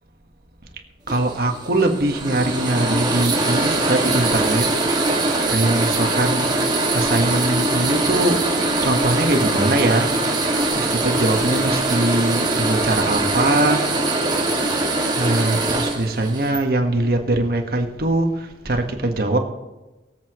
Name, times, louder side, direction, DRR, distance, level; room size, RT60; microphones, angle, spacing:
sound 1, 1.1-16.6, right 2 dB, 25° right, 1.9 m, -22 dB
voice 1, 1.1-4.7 5.1-6.5 6.9-8.4 8.8-10.1 10.7-13.9 15.1-19.4, right 2 dB, 60° right, 4 dB, 1.5 m, -22 dB
23.0 x 8.1 x 3.1 m, 1.1 s
head